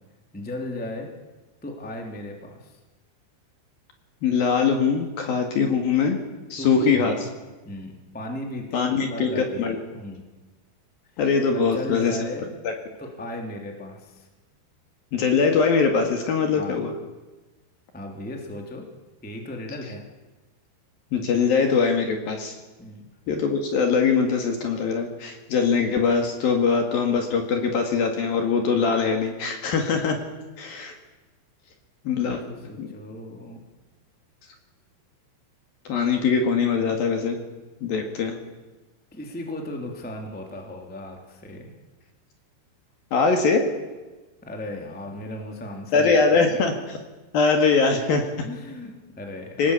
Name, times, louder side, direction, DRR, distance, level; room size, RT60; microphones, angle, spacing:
voice 1, 0.3-1.1 1.6-2.8 6.6-7.2 7.6-10.2 11.5-12.5 13.0-14.3 16.5-16.8 17.9-18.9 19.2-20.0 22.8-23.1 32.2-33.6 39.1-41.7 44.4-46.6 48.4-49.6, left 1 dB, 5° left, 2 dB, 1.9 m, -36 dB
voice 2, 4.2-6.2 6.5-7.1 8.7-9.8 11.2-12.2 12.6-12.7 15.1-16.9 21.1-22.5 23.3-30.2 30.6-30.9 32.0-32.4 32.8-32.9 35.8-37.4 37.8-38.4 43.1-43.7 45.9-46.7 47.3-48.3 49.6-49.7, left 5 dB, 55° left, 4 dB, 3.3 m, -22 dB
25.0 x 19.0 x 8.4 m, 1.2 s
omnidirectional pair, 5.6 m